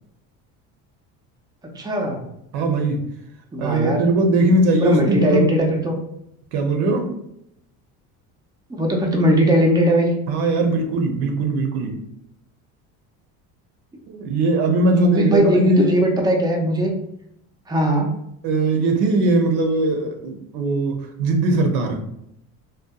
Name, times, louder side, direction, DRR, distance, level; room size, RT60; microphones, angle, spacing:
voice 1, 1.8-2.2 3.5-4.0 4.8-5.9 8.7-10.1 14.9-16.9 17.7-18.1, right 1 dB, 10° right, 1 dB, 0.4 m, -19 dB
voice 2, 2.5-3.0 3.6-5.5 6.5-7.1 10.3-12.0 14.1-16.1 18.4-22.0, right 2 dB, 75° right, 4 dB, 0.6 m, -20 dB
2.7 x 2.1 x 2.2 m, 0.77 s
supercardioid pair, 105°, 39 cm